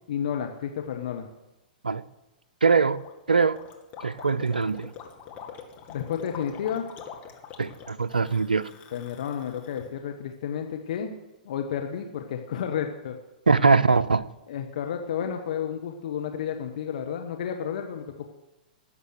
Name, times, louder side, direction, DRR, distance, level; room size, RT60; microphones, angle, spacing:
voice 1, 0.1-1.3 5.9-6.9 8.9-11.1 11.4-13.2 14.5-18.3, left 8 dB, 60° left, 4 dB, 1.3 m, -31 dB
voice 2, 2.6-3.0 3.3-3.6 4.0-4.9 7.6-8.7 13.5-14.3, right 4 dB, 85° right, 14 dB, 0.5 m, -22 dB
Gurgling, 2.9-9.8, left 7 dB, 30° left, 2.3 m, -44 dB
18.0 x 7.4 x 6.5 m, 0.98 s
figure-of-eight pair, 105°, 5 cm